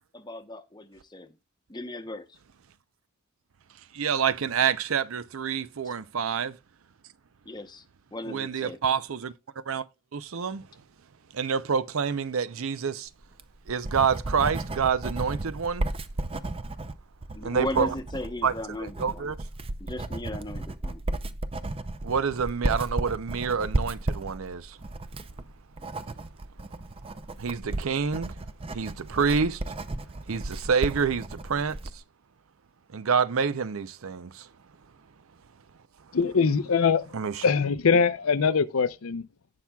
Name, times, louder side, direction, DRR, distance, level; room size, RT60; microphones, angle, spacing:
voice 1, 0.1-1.3 1.7-2.4 5.8-5.9 7.4-7.8 8.1-8.8 17.3-19.3 19.8-21.0, left 1 dB, 20° left, 0.8 m, -36 dB
voice 2, 3.9-6.6 8.3-9.3 9.7-9.8 10.1-10.7 11.3-13.1 13.7-15.9 17.4-17.9 18.4-18.5 18.8-19.4 22.0-24.8 27.4-28.3 28.7-29.6 30.3-32.0 32.9-34.5 37.1-37.4, right 6 dB, 70° right, 0.6 m, -27 dB
Writing, 13.2-32.0, right 2 dB, 25° right, 0.5 m, -34 dB
voice 3, 36.1-37.2 37.4-39.3, left 5 dB, 75° left, 0.6 m, -23 dB
17.5 x 5.9 x 2.3 m
head